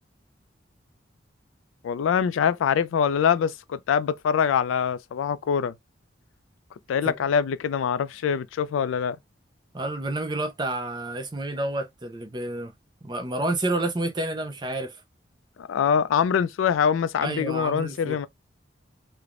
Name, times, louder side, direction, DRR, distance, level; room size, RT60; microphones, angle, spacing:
voice 1, 1.8-5.7 6.9-9.2 15.6-18.3, left 7 dB, 90° left, 0.3 m, -24 dB
voice 2, 9.7-12.7 13.0-15.0 17.2-18.2, right 2 dB, 25° right, 0.5 m, -29 dB
3.2 x 2.1 x 2.4 m
head